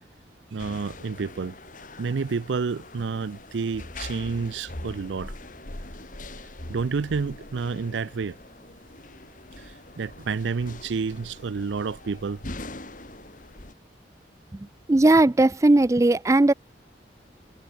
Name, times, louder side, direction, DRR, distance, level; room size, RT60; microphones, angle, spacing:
voice 1, 0.5-1.6 2.0-5.3 6.7-8.4 9.6-12.4, right 5 dB, 85° right, 0.5 m, -29 dB
sound 1, 0.6-13.7, left 2 dB, 45° left, 2.8 m, -42 dB
voice 2, 14.9-16.5, right 2 dB, 15° right, 0.4 m, -18 dB
head